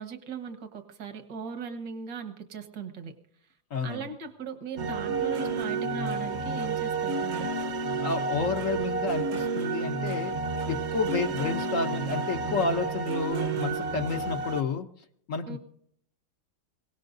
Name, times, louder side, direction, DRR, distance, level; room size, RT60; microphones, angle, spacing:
voice 1, 0.0-3.1 3.8-7.5 15.5-15.6, right 6 dB, 70° right, 6 dB, 2.0 m, -39 dB
voice 2, 3.7-4.1 8.0-10.3 10.7-14.9 15.3-15.6, left 4 dB, 55° left, 7 dB, 1.0 m, -30 dB
sound 1, 4.8-14.6, right 4 dB, 45° right, 1.0 m, -30 dB
23.0 x 18.5 x 2.6 m, 0.67 s
omnidirectional pair, 2.0 m